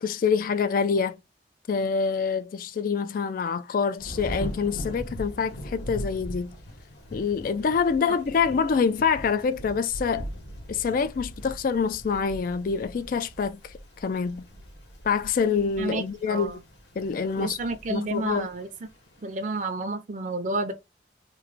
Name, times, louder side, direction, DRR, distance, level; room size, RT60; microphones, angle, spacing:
voice 1, 0.0-1.2 1.7-6.5 7.1-10.3 10.7-14.5 15.0-16.6 17.0-17.6 17.9-18.5, left 5 dB, 50° left, 0.3 m, -26 dB
Thunder / Rain, 4.0-19.6, equal, 75° left, 1.5 m, -41 dB
voice 2, 17.4-18.7 19.2-20.7, right 3 dB, 45° right, 0.5 m, -30 dB
3.0 x 2.5 x 4.0 m
head